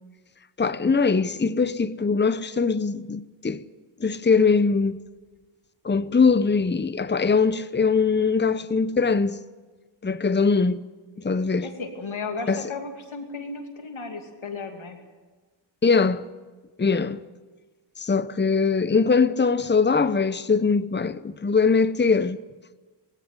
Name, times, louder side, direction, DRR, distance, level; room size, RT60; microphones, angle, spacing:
voice 1, 0.6-3.6 4.0-5.0 5.8-9.4 10.0-10.8 11.2-11.7 12.5-12.6 15.8-16.3 16.8-17.2 18.0-22.4, left 4 dB, 25° left, 0.8 m, -21 dB
voice 2, 11.6-15.0, left 4 dB, 85° left, 2.7 m, -35 dB
18.5 x 16.0 x 9.6 m
cardioid pair, 45°, 47 cm